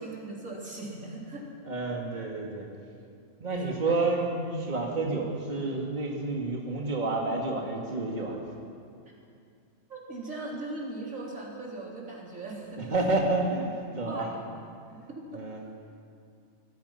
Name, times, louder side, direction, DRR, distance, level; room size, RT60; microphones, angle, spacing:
voice 1, 0.0-1.5 3.5-4.0 8.1-8.2 9.9-12.8 14.1-14.4 15.2-15.4, right 2 dB, 75° right, -3 dB, 4.1 m, -39 dB
voice 2, 1.6-2.7 3.4-8.4 12.9-14.3 15.3-15.6, right 2 dB, 35° right, -1 dB, 2.5 m, -29 dB
25.0 x 19.0 x 5.9 m, 2.4 s
omnidirectional pair, 1.4 m